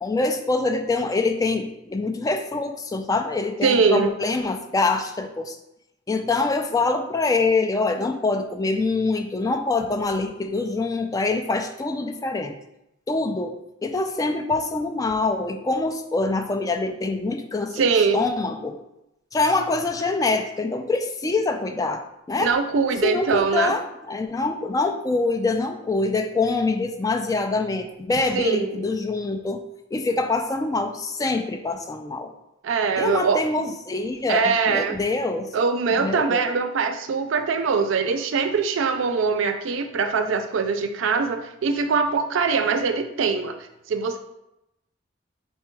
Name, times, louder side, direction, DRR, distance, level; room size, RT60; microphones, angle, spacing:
voice 1, 0.0-5.6 6.1-12.5 13.1-13.6 13.8-18.7 19.3-22.5 23.0-29.6 29.9-32.3 33.0-35.5 36.0-36.5, left 3 dB, 20° left, 5 dB, 0.3 m, -25 dB
voice 2, 3.6-4.1 17.7-18.2 22.4-23.7 28.3-28.9 32.6-33.4 34.3-35.0 35.5-43.6 43.9-44.2, right 5 dB, 75° right, 8 dB, 0.4 m, -22 dB
4.3 x 2.3 x 4.4 m, 0.87 s
head